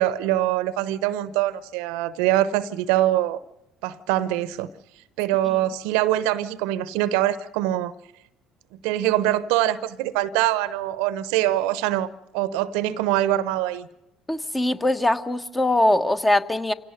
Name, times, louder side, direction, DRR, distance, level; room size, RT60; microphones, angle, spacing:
voice 1, 0.0-3.4 3.8-4.7 5.2-7.9 8.8-12.1 12.3-13.9, right 13 dB, 75° right, 16 dB, 0.8 m, -23 dB
voice 2, 14.3-16.7, left 1 dB, 15° left, 9 dB, 1.3 m, -21 dB
25.5 x 17.5 x 6.6 m, 0.89 s
hypercardioid pair, 60°, 0 cm